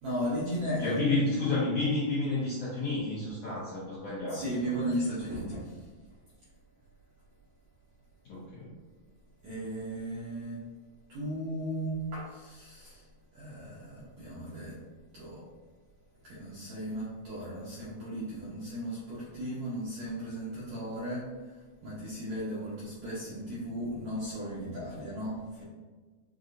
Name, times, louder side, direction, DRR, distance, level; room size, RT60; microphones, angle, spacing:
voice 1, 0.0-1.0 4.3-5.9 9.4-10.6 11.1-13.0 13.3-14.8 15.1-15.4 16.2-21.2 21.8-25.6, equal, 75° right, -9 dB, 1.6 m, -36 dB
voice 2, 0.8-4.9 8.2-8.7, left 2 dB, 70° left, -10 dB, 1.6 m, -31 dB
6.4 x 2.6 x 2.5 m, 1.4 s
omnidirectional pair, 4.3 m